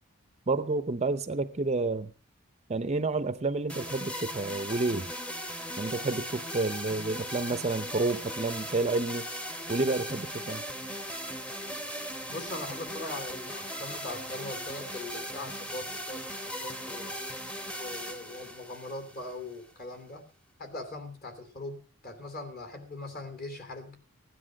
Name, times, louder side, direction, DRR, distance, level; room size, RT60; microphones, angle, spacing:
voice 1, 0.5-2.1 2.7-5.1 5.8-9.3 9.7-10.6, right 3 dB, 30° right, 0.6 m, -30 dB
sound 1, 3.7-19.7, equal, 5° left, 1.0 m, -38 dB
voice 2, 12.3-17.2 17.8-20.2 20.6-24.0, left 2 dB, 45° left, 2.9 m, -41 dB
16.0 x 9.9 x 6.2 m
head